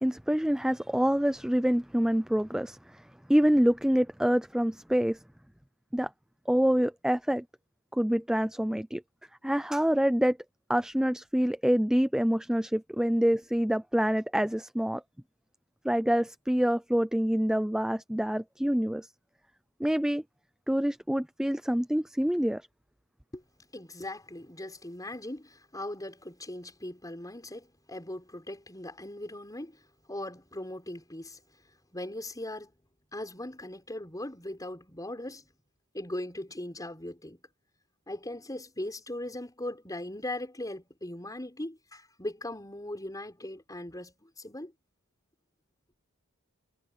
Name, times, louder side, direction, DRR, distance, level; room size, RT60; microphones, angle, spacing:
voice 1, 0.0-3.0 3.3-5.2 5.9-6.1 6.5-7.4 7.9-9.0 9.4-10.4 10.7-15.0 15.8-19.1 19.8-20.2 20.7-22.6, equal, 5° right, 0.4 m, -26 dB
voice 2, 23.7-29.8 30.1-31.4 31.9-32.7 33.1-35.4 35.9-37.4 38.1-44.7, left 1 dB, 15° left, 6.8 m, -39 dB
head